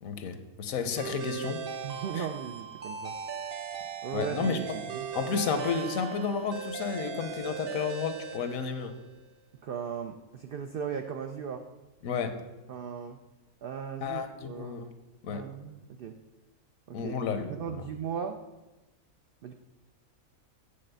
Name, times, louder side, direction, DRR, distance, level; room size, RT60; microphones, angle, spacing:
voice 1, 0.0-1.6 2.1-2.3 4.1-4.6 5.1-8.9 12.0-12.4 14.0-14.9 15.2-15.4 16.9-17.8, left 6 dB, 75° left, 8 dB, 1.1 m, -32 dB
sound 1, 1.0-9.1, right 6 dB, 50° right, 0.9 m, -38 dB
voice 2, 1.8-3.1 4.0-5.1 9.6-11.7 12.7-13.2 13.6-14.8 15.3-16.2 16.9-17.1 17.5-18.4 19.4-19.5, right 7 dB, 75° right, 6 dB, 0.5 m, -37 dB
8.6 x 4.1 x 6.6 m, 1.1 s
omnidirectional pair, 1.5 m